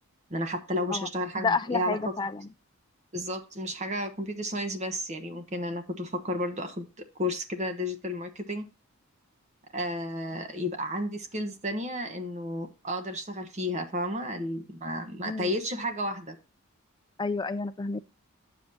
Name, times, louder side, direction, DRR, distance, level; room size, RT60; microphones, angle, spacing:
voice 1, 0.3-2.0 3.1-8.7 9.7-16.4, left 1 dB, 30° right, 1.1 m, -32 dB
voice 2, 1.4-2.5 15.2-15.5 17.2-18.0, left 4 dB, 20° left, 0.3 m, -30 dB
8.8 x 7.6 x 2.7 m
head